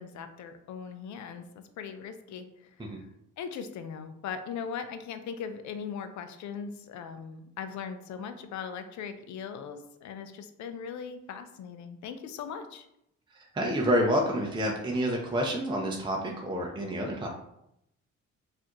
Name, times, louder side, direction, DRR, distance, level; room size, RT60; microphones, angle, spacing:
voice 1, 0.0-1.4 1.8-2.5 2.8-3.0 3.4-12.9, left 6 dB, 70° left, 9 dB, 0.5 m, -39 dB
voice 2, 13.5-17.3, equal, 15° right, -1 dB, 0.5 m, -28 dB
4.1 x 2.5 x 2.9 m, 0.79 s
cardioid pair, 90°, 30 cm